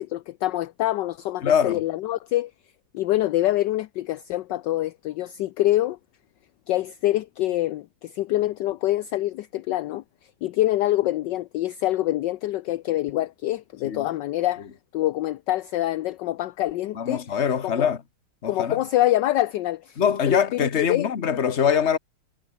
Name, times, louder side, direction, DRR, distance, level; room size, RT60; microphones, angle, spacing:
voice 1, 0.0-2.5 2.9-6.0 6.7-10.0 10.4-14.7 14.9-17.2 17.6-17.9 18.5-21.1, left 15 dB, 70° left, 1.2 m, -25 dB
voice 2, 1.4-1.8 13.8-14.1 16.9-18.0 18.4-18.8 20.0-22.0, left 7 dB, 35° left, 1.6 m, -23 dB
omnidirectional pair, 2.2 m